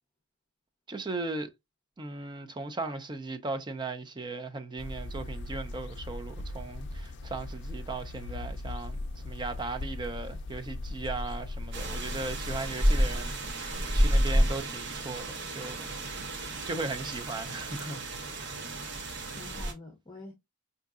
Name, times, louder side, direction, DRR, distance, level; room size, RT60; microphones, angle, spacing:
voice 1, 0.9-1.5 2.0-15.9 16.7-18.0 18.3-18.6, right 3 dB, 20° right, 0.5 m, -37 dB
sound 1, 4.8-12.7, left 2 dB, 55° left, 0.4 m, -38 dB
sound 2, 11.7-19.7, equal, 55° right, 1.0 m, -30 dB
voice 2, 19.3-20.3, left 2 dB, 20° left, 0.7 m, -48 dB
4.9 x 2.7 x 2.3 m
head